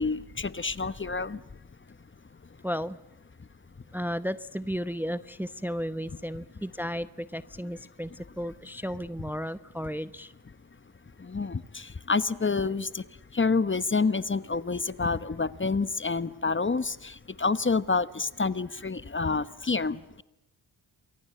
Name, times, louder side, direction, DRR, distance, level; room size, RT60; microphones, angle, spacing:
voice 1, 0.0-1.4 11.2-13.0 13.3-20.2, left 4 dB, 25° left, 15 dB, 1.1 m, -28 dB
voice 2, 2.6-3.0 3.9-8.1 8.4-10.3, equal, 5° right, 13 dB, 0.9 m, -34 dB
28.0 x 23.0 x 7.7 m, 0.93 s
supercardioid pair, 50°, 44 cm